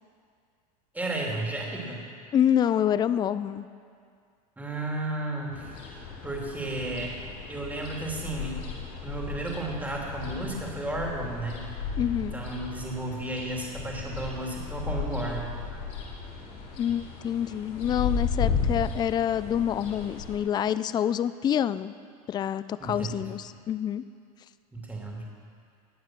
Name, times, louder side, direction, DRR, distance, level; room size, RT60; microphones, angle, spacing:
voice 1, 0.9-2.0 4.6-7.2 7.5-8.6 9.0-11.7 12.2-15.5 22.8-23.2 24.7-25.3, right 2 dB, 10° right, -2 dB, 2.8 m, -33 dB
voice 2, 2.3-3.7 12.0-12.4 16.8-21.9 22.3-24.0, left 9 dB, 20° left, 15 dB, 0.3 m, -27 dB
sound 1, 5.5-20.4, left 5 dB, 75° left, 3.2 m, -35 dB
19.0 x 7.4 x 6.1 m, 2.3 s
supercardioid pair, 110°, 19 cm